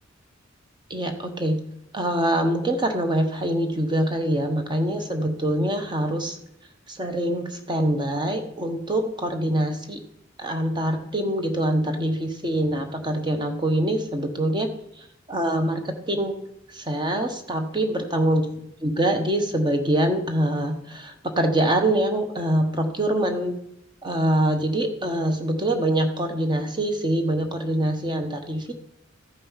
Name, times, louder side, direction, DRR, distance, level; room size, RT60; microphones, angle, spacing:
voice 1, 0.9-1.6 1.9-6.4 6.9-10.0 10.4-14.7 15.0-16.4 16.7-18.4 18.8-23.6 24.0-28.7, right 1 dB, 25° right, 5 dB, 1.1 m, -24 dB
14.0 x 5.4 x 5.6 m, 0.78 s
head